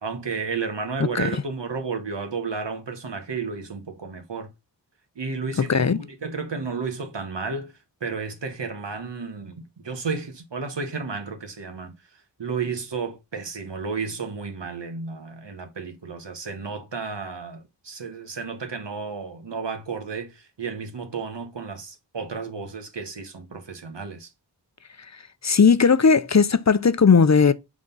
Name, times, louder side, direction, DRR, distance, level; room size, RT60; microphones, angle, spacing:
voice 1, 0.0-4.5 5.2-7.7 8.0-12.0 12.4-24.3, right 4 dB, 85° right, 1.5 m, -32 dB
voice 2, 25.4-27.5, left 5 dB, 40° left, 0.6 m, -17 dB
7.9 x 3.7 x 5.4 m
wide cardioid pair, 70°, 42 cm